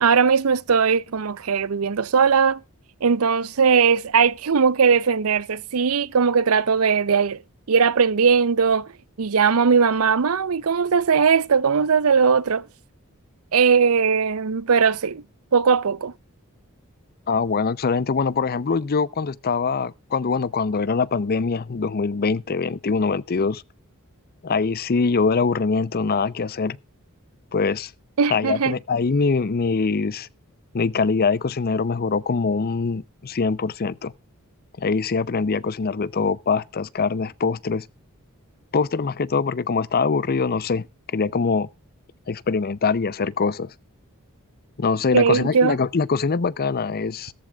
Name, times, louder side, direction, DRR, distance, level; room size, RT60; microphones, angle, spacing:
voice 1, 0.0-2.6 3.0-7.4 7.7-8.9 9.2-12.6 13.5-15.2 15.5-16.1 28.2-28.8 45.1-45.8, right 6 dB, 75° right, 0.6 m, -19 dB
voice 2, 17.3-23.6 24.4-26.8 27.5-27.9 28.3-30.3 30.7-34.1 34.8-37.9 38.7-40.9 41.1-41.7 42.3-43.7 44.8-47.3, left 4 dB, 45° left, 0.5 m, -23 dB
15.0 x 14.0 x 2.4 m
head